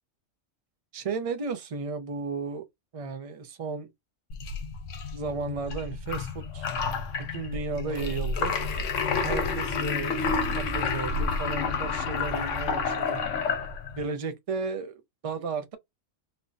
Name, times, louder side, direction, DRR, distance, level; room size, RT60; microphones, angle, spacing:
voice 1, 0.9-2.6 2.9-3.9 5.1-6.7 7.3-8.5 9.2-10.2 10.5-13.2 14.0-14.9 15.2-15.8, right 4 dB, 40° right, 0.5 m, -34 dB
sound 1, 4.3-14.0, left 5 dB, 70° left, 1.1 m, -30 dB
4.3 x 2.1 x 2.6 m
omnidirectional pair, 1.4 m